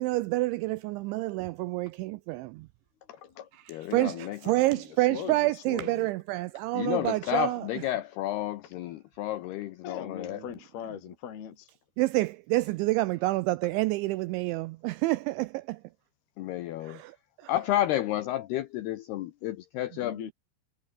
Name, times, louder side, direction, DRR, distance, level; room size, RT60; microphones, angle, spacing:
voice 1, 0.0-2.7 3.9-7.7 12.0-15.8 16.8-17.5, right 20 dB, 90° right, 2.7 m, -28 dB
voice 2, 3.1-3.5 4.4-4.8 5.1-6.1 7.2-7.3 9.8-11.7 20.0-20.3, left 9 dB, 50° left, 5.0 m, -40 dB
voice 3, 3.7-4.4 6.7-10.4 16.4-17.0 17.5-20.2, left 13 dB, 85° left, 2.3 m, -31 dB
omnidirectional pair, 5.9 m